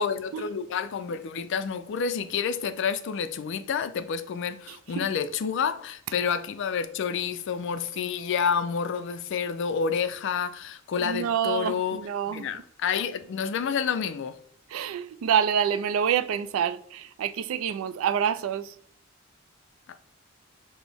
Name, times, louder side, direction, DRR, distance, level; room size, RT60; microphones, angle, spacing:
voice 1, 0.0-12.0 12.3-14.4, left 6 dB, 65° left, 0.4 m, -29 dB
voice 2, 4.7-5.1 11.0-12.5 14.7-18.8, right 8 dB, 85° right, 0.3 m, -27 dB
5.9 x 2.1 x 3.3 m
head